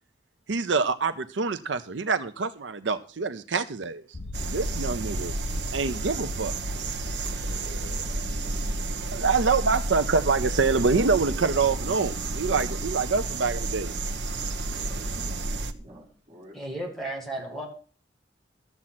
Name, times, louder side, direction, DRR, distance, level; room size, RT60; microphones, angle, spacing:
voice 1, 0.5-4.0 4.4-5.3 5.7-6.5 8.1-8.3 9.0-13.9, right 4 dB, 85° right, 0.7 m, -26 dB
sound 1, 4.1-16.1, left 2 dB, 45° left, 1.5 m, -43 dB
sound 2, 4.3-15.7, right 2 dB, 70° right, 1.0 m, -31 dB
voice 2, 4.7-5.6 7.3-7.5 14.5-16.6, equal, 25° right, 4.9 m, -52 dB
voice 3, 16.5-17.7, right 1 dB, ahead, 2.6 m, -34 dB
13.0 x 7.5 x 5.9 m
head